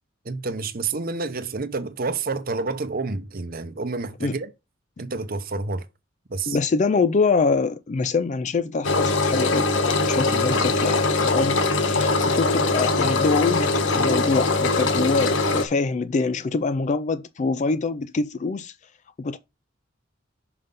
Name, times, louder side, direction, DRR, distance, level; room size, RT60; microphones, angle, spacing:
voice 1, 0.2-4.5 5.0-5.9 6.3-6.6, right 3 dB, 50° right, 0.9 m, -29 dB
voice 2, 6.5-18.7 19.2-19.4, left 4 dB, 35° left, 0.4 m, -25 dB
Engine, 8.8-15.6, left 3 dB, 70° left, 1.1 m, -22 dB
5.6 x 5.4 x 5.3 m
head